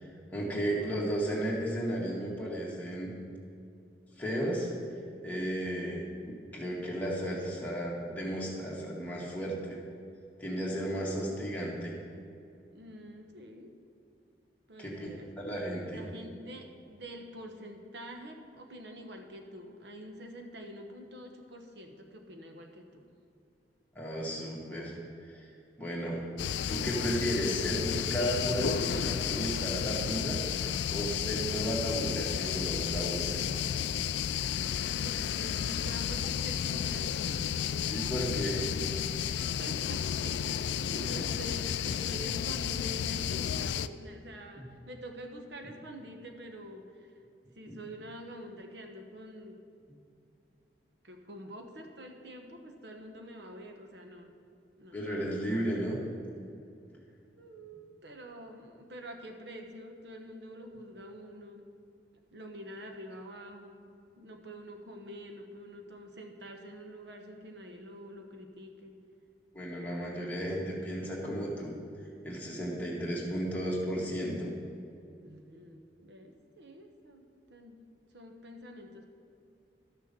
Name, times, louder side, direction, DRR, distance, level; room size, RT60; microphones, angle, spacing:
voice 1, 0.0-3.1 4.2-9.8 10.4-11.9 14.8-15.1 15.4-16.0 24.0-25.4 25.8-26.2 26.7-30.4 30.9-33.6 37.9-38.7 40.9-41.3 47.7-47.8 54.9-56.0 69.5-71.7 72.2-74.5, equal, 10° left, -5 dB, 2.0 m, -34 dB
voice 2, 12.7-13.8 14.7-15.3 15.9-23.0 35.0-37.5 39.2-47.2 47.5-49.6 51.0-54.4 54.8-55.0 57.4-61.8 62.3-69.0 75.2-77.8 78.1-79.1, equal, 70° right, 4 dB, 1.0 m, -46 dB
sound 1, 26.4-43.9, left 8 dB, 70° left, 0.3 m, -32 dB
12.5 x 6.6 x 6.8 m, 2.6 s
head